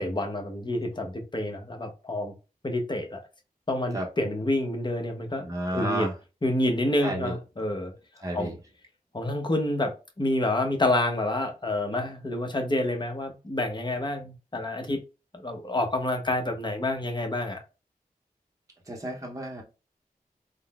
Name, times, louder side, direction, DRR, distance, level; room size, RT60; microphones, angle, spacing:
voice 1, 0.0-2.3 2.6-3.2 3.7-5.5 5.7-6.1 6.4-7.9 8.3-8.5 9.1-15.0 15.3-17.6, left 1 dB, 30° left, 0.8 m, -28 dB
voice 2, 5.4-6.2 7.0-7.4 8.2-8.6 18.9-19.6, right 1 dB, 20° right, 0.8 m, -31 dB
3.7 x 2.0 x 2.3 m
wide cardioid pair, 55°, 16 cm